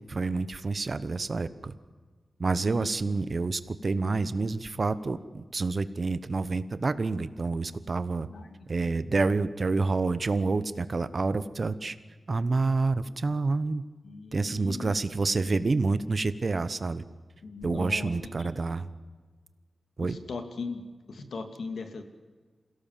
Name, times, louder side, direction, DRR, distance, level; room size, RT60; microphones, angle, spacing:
voice 1, 0.0-1.7 2.4-8.3 8.7-12.0 12.3-13.8 14.3-17.0 17.6-18.9 20.0-20.2, right 3 dB, 40° right, 14 dB, 1.0 m, -28 dB
voice 2, 14.0-15.0 17.4-18.3 20.0-20.8 21.1-22.0, left 4 dB, 80° left, 7 dB, 2.4 m, -39 dB
27.5 x 17.0 x 7.6 m, 1.4 s
wide cardioid pair, 135°, 0 cm